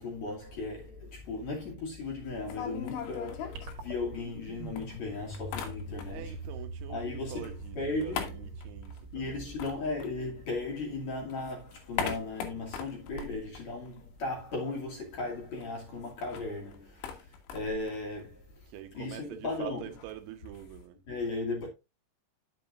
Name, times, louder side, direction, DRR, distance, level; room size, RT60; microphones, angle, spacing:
voice 1, 0.0-6.4 6.9-8.3 9.1-17.3 17.5-19.9 21.1-21.7, left 3 dB, 45° left, 3.2 m, -36 dB
sound 1, 2.2-4.4 4.8-6.4 6.7-10.8 11.1-14.4 14.7-14.8 15.0-20.8, left 7 dB, 85° left, 3.8 m, -41 dB
sound 2, 3.5-10.1, right 2 dB, 55° right, 3.2 m, -43 dB
voice 2, 6.1-9.6 18.7-21.0, right 12 dB, 90° right, 3.4 m, -45 dB
10.5 x 7.7 x 2.5 m
omnidirectional pair, 5.3 m